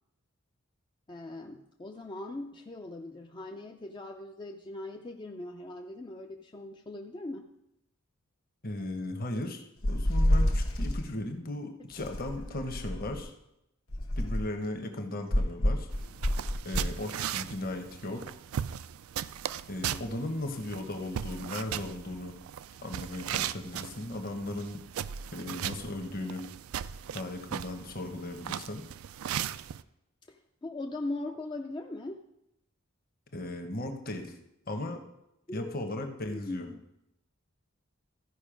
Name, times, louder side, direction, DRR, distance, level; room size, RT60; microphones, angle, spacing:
voice 1, 1.1-7.5 12.0-12.1 30.3-32.2 35.5-36.8, left 2 dB, 20° left, 3 dB, 0.4 m, -40 dB
voice 2, 8.6-13.3 14.2-15.9 16.6-18.4 19.7-22.3 22.8-24.8 25.3-26.4 27.1-28.8 33.3-34.3 34.7-35.0 35.5-36.7, left 1 dB, 45° left, 5 dB, 1.0 m, -37 dB
sound 1, 9.8-11.1 12.0-13.3 13.9-14.6 15.3-16.9, left 1 dB, 75° left, 1.2 m, -28 dB
sound 2, 15.9-29.8, right 10 dB, 75° right, 0.3 m, -38 dB
14.0 x 5.3 x 5.0 m, 0.86 s
head